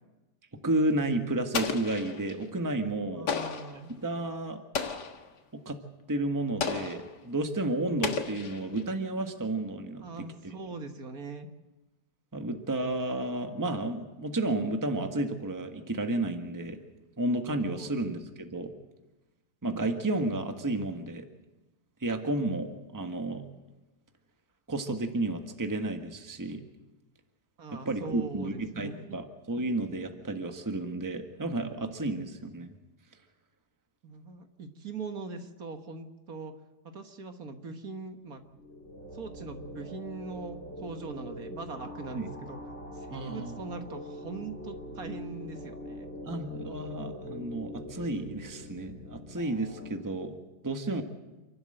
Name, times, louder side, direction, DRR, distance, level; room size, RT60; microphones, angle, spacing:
voice 1, 0.6-3.3 4.0-4.6 5.5-5.8 6.1-10.5 12.3-16.8 17.2-18.8 19.6-21.3 22.0-23.5 24.7-26.6 27.7-32.7 42.1-42.3 43.1-43.6 46.2-50.4 50.6-51.0, right 2 dB, 10° right, 5 dB, 1.4 m, -32 dB
Explosion, 1.5-2.4 3.3-3.8 4.7-5.3 6.6-7.1 8.0-8.9, left 5 dB, 85° left, 2.2 m, -33 dB
voice 2, 3.1-4.0 10.0-11.5 17.7-17.9 27.6-29.2 34.0-36.5 36.9-38.4 39.1-42.6 42.9-46.1, right 4 dB, 60° right, 6 dB, 1.9 m, -41 dB
sound 1, 38.3-49.9, equal, 40° left, 2.6 m, -43 dB
28.0 x 12.0 x 7.8 m, 1.1 s
omnidirectional pair, 1.8 m